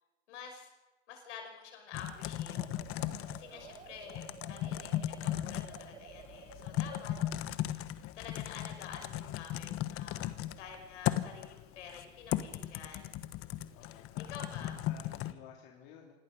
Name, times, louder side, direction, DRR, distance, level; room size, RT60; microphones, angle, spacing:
voice 1, 0.3-0.7 1.1-2.6 3.3-7.2 8.1-13.1 14.3-14.8, left 6 dB, 75° left, 4 dB, 5.8 m, -49 dB
Typing, 1.9-15.3, left 13 dB, 40° left, 1.2 m, -37 dB
sound 1, 2.5-7.4, right 10 dB, 85° right, 1.3 m, -53 dB
voice 2, 3.5-3.9 13.7-16.1, left 9 dB, 55° left, -1 dB, 3.6 m, -55 dB
26.5 x 18.5 x 5.5 m, 1.1 s
hypercardioid pair, 105°, 36 cm